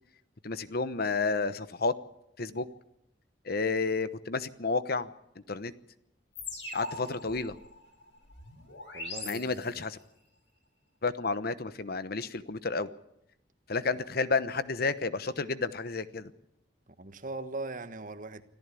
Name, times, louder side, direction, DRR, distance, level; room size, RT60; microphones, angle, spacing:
voice 1, 0.4-1.9 2.4-2.7 3.4-5.1 5.5-5.7 6.7-7.6 9.2-10.0 11.0-12.9 13.7-16.3, left 4 dB, 55° left, 1.0 m, -31 dB
sound 1, 6.4-10.0, left 3 dB, 75° left, 6.9 m, -42 dB
voice 2, 8.9-9.8 17.0-18.4, right 2 dB, 45° right, 1.5 m, -40 dB
25.5 x 14.5 x 8.4 m
head